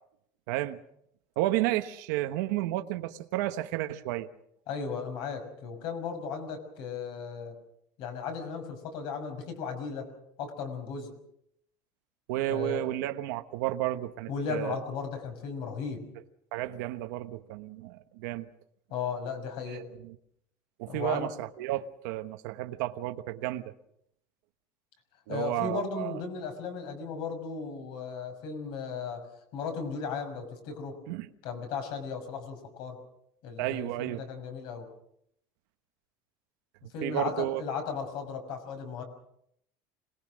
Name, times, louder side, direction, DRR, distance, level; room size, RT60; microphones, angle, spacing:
voice 1, 0.5-0.8 1.4-4.3 12.3-14.8 16.5-18.5 19.7-20.1 20.8-23.7 25.3-26.2 31.1-31.3 33.6-34.2 37.0-37.6, right 15 dB, 85° right, 1.3 m, -32 dB
voice 2, 4.7-7.5 8.0-10.1 10.4-11.1 12.5-12.9 14.3-16.0 18.9-19.9 20.9-21.3 25.3-31.0 31.4-33.0 33.4-34.9 36.9-39.0, left 5 dB, 55° left, 5.9 m, -36 dB
26.0 x 20.5 x 6.4 m
cardioid pair, 170°, 10 cm